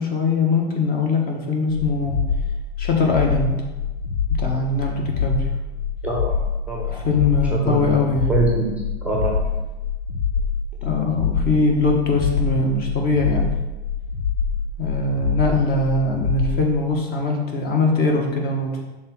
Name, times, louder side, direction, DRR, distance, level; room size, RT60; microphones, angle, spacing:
voice 1, 0.0-2.2 2.8-3.6 4.4-5.5 6.9-8.3 10.8-13.5 14.8-18.8, left 3 dB, 30° left, 0 dB, 1.4 m, -21 dB
sound 1, 1.7-16.6, left 6 dB, 85° left, 1.1 m, -25 dB
voice 2, 6.0-6.4 6.7-7.2 7.5-8.0 8.3-8.7 9.0-9.5, right 3 dB, 5° right, -2 dB, 0.9 m, -24 dB
6.3 x 3.7 x 6.1 m, 1.1 s
hypercardioid pair, 110°, 32 cm